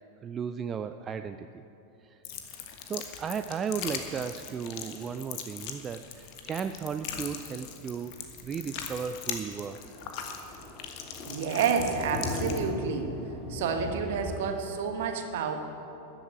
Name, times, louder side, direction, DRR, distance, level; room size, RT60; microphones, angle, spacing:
voice 1, 0.2-1.6 2.0-2.2 2.9-8.1 8.4-9.8 14.4-14.5, right 7 dB, 25° right, 9 dB, 0.4 m, -35 dB
sound 1, 2.2-12.6, left 8 dB, 45° left, 1.4 m, -40 dB
Thunder, 7.4-7.6 7.9-8.0 8.4-8.5 8.8-8.9 9.1-14.4, left 2 dB, 25° left, 2.0 m, -38 dB
voice 2, 11.3-13.1 13.5-15.6, right 6 dB, 55° right, 5 dB, 1.4 m, -29 dB
13.5 x 7.8 x 8.6 m, 2.9 s
figure-of-eight pair, 90°, 0 cm